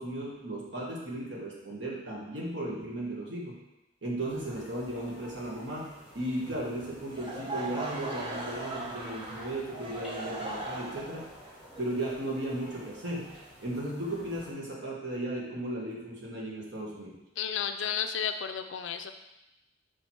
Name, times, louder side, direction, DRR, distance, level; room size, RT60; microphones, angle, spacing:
voice 1, 0.0-3.6 4.0-11.3 11.8-13.3 13.6-17.1, right 1 dB, 60° right, -3 dB, 1.4 m, -36 dB
sound 1, 4.3-14.5, equal, 5° right, 1.5 m, -51 dB
Laughter / Crowd, 7.1-13.0, right 2 dB, 25° right, 0.9 m, -39 dB
voice 2, 17.4-19.1, left 8 dB, 70° left, 8 dB, 0.4 m, -32 dB
4.9 x 4.6 x 4.4 m, 0.93 s
head